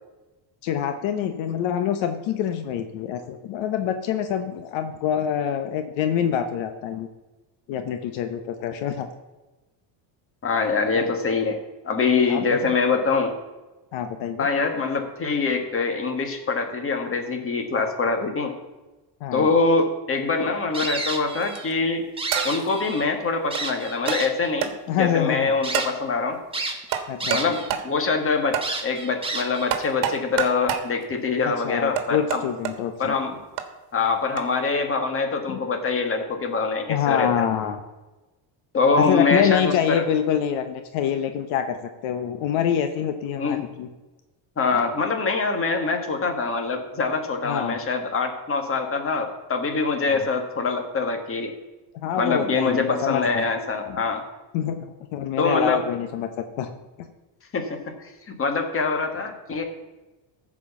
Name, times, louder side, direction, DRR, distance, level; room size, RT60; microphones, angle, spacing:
voice 1, 0.6-7.1 7.7-9.1 11.0-11.1 12.3-12.6 13.9-14.5 19.2-19.5 24.9-25.5 27.1-27.4 31.4-33.1 35.5-35.6 36.9-37.8 39.0-41.8 42.0-43.9 47.4-47.8 50.1-50.3 52.0-53.4 53.9-54.0 54.5-56.3 56.6-56.7, left 9 dB, 70° left, 7 dB, 1.0 m, -26 dB
voice 2, 10.4-11.6 11.8-13.3 14.4-18.5 19.3-22.0 22.4-26.4 26.7-26.8 27.3-27.6 27.8-32.4 33.0-33.4 33.9-37.5 38.7-40.0 43.4-43.6 44.6-51.5 52.2-54.2 55.4-55.8 57.5-57.8 58.3-59.6, left 4 dB, 25° left, 5 dB, 1.7 m, -24 dB
sound 1, 20.7-21.7 22.0-23.1 23.5-24.5 25.1-25.2 25.6-25.9 26.5-27.7 28.0-28.1 28.6-29.7, right 3 dB, 10° right, 1.4 m, -30 dB
sound 2, 21.4-21.7 22.3-22.7 23.5-23.6 24.1-24.2 24.6-24.7 25.7-26.0 26.9-27.4 27.7-27.9 28.5-28.7 29.7-30.9 32.0-32.7 33.6-33.7 34.4-34.5, right 10 dB, 70° right, 1.4 m, -27 dB
14.0 x 4.9 x 7.1 m, 1.1 s
cardioid pair, 130°, 48 cm